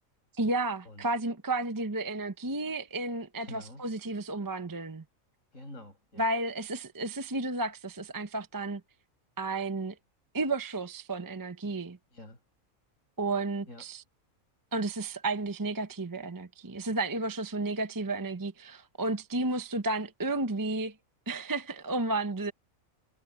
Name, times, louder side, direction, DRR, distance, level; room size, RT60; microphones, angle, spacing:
voice 1, 0.4-5.0 6.2-8.8 9.4-9.9 10.3-12.0 13.2-14.0 14.7-20.9 21.3-22.5, right 2 dB, 20° right, 0.7 m, -32 dB
voice 2, 3.4-3.9 5.5-6.3 12.1-12.4 13.7-13.9, left 1 dB, 65° left, 8.7 m, -47 dB
omnidirectional pair, 1.5 m